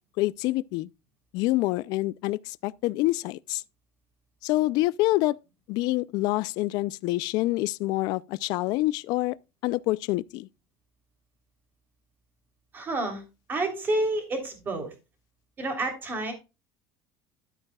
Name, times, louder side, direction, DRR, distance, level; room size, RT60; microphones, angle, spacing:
voice 1, 0.2-0.9 1.3-3.6 4.4-5.4 5.7-9.4 9.6-10.5, left 18 dB, 60° left, 0.4 m, -26 dB
voice 2, 12.7-13.2 13.5-14.9 15.6-16.3, right 2 dB, 25° right, 3.3 m, -29 dB
12.5 x 8.8 x 2.3 m
cardioid pair, 160°, 8 cm